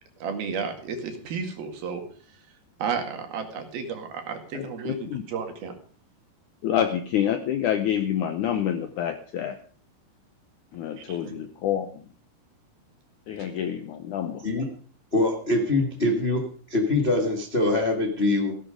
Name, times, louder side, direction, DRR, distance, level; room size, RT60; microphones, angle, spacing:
voice 1, 0.2-2.0 2.8-5.7 11.0-11.4 13.4-13.5, right 6 dB, 70° right, 5 dB, 3.8 m, -32 dB
voice 2, 4.5-5.2 6.6-9.6 10.7-12.0 13.3-14.5, left 10 dB, 80° left, 9 dB, 1.8 m, -27 dB
voice 3, 15.1-18.5, left 2 dB, 55° left, 2 dB, 0.6 m, -24 dB
16.0 x 11.5 x 5.1 m, 0.44 s
omnidirectional pair, 4.6 m